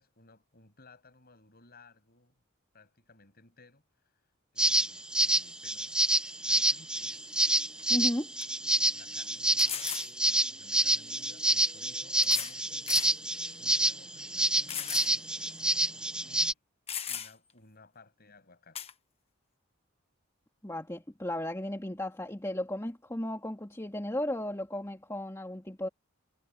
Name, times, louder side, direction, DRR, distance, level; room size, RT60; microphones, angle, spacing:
voice 1, 0.0-2.3 2.7-3.9 4.5-6.0 6.5-7.2 8.9-9.9 10.2-13.0 13.6-15.4 16.2-16.6 17.1-18.9, left 3 dB, 45° left, 7.3 m, -58 dB
sound 1, 4.6-16.5, right 1 dB, 5° right, 0.7 m, -28 dB
sound 2, 7.8-7.9 8.4-8.5 9.6-10.1 11.2-11.3 12.2-12.6 12.9-13.1 13.7-13.8 14.7-15.1 15.5-15.6 16.5-16.6 16.9-17.5 18.7-18.9, left 8 dB, 30° left, 1.1 m, -36 dB
voice 2, 7.9-8.3 20.6-25.9, left 1 dB, 15° left, 2.2 m, -34 dB
head